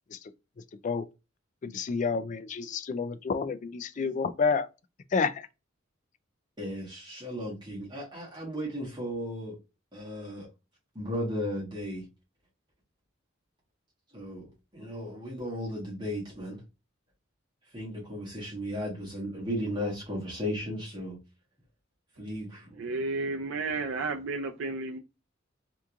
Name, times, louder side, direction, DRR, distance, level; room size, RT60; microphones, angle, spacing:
voice 1, 1.6-4.7 5.1-5.5, left 5 dB, 40° left, 0.3 m, -29 dB
voice 2, 6.6-9.5 9.9-10.5 10.9-12.0 14.1-14.5 14.7-16.6 17.7-21.2 22.2-22.7, equal, 25° right, 1.6 m, -35 dB
voice 3, 22.8-25.0, right 3 dB, 75° right, 0.4 m, -32 dB
3.5 x 2.9 x 2.4 m
head